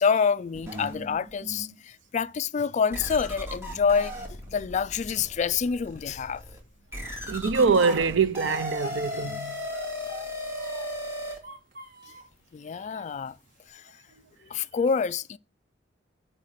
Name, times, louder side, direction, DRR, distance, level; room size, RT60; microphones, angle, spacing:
voice 1, 0.0-4.1 4.5-6.4 12.5-13.3 13.7-13.9 14.5-15.4, left 6 dB, 40° left, 0.3 m, -27 dB
sound 1, 0.5-1.7 2.3-2.4 2.9-11.4, left 1 dB, 15° right, 2.1 m, -37 dB
voice 2, 7.3-9.6, right 5 dB, 75° right, 0.6 m, -24 dB
Speech, 7.6-9.3 9.6-11.0 11.4-12.4 12.9-13.7, right 1 dB, 50° right, 1.7 m, -44 dB
10.5 x 3.8 x 6.5 m
head